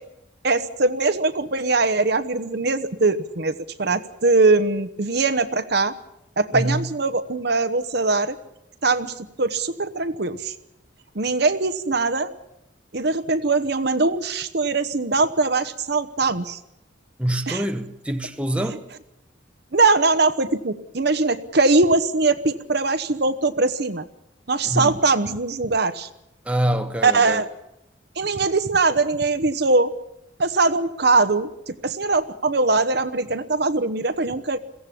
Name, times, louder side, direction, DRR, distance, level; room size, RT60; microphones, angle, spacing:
voice 1, 0.4-5.9 6.4-8.4 8.8-10.5 11.1-12.3 12.9-16.6 17.5-17.6 19.7-24.1 24.5-26.1 27.0-27.5 28.2-29.9 30.4-34.6, right 3 dB, 60° right, 1.1 m, -21 dB
voice 2, 6.5-6.9 17.2-18.8 24.6-25.0 26.4-27.4, right 1 dB, 5° right, 1.1 m, -25 dB
22.5 x 16.5 x 8.5 m
head